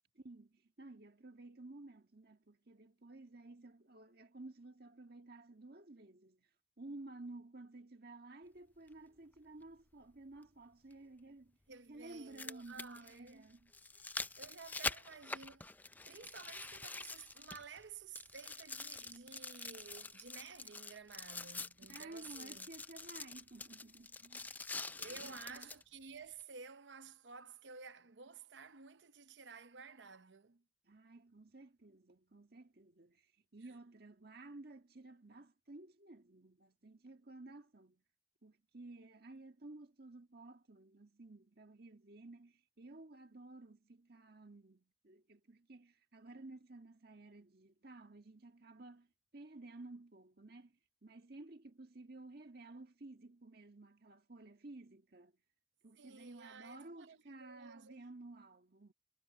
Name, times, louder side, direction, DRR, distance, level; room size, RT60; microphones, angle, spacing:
voice 1, 0.2-6.5 6.8-11.6 11.9-13.7 21.9-24.5 25.2-25.7 30.8-38.0 38.4-49.1 49.3-50.7 51.0-55.3 55.8-58.9, right 2 dB, 60° right, 1.7 m, -54 dB
sound 1, 8.9-9.0 10.9-11.0 12.1-17.8 18.1-25.8 26.4-26.5, left 3 dB, 10° left, 0.4 m, -46 dB
voice 2, 11.7-13.5 14.4-15.8 16.1-22.7 24.7-30.6 56.0-58.1, right 5 dB, 85° right, 0.8 m, -53 dB
head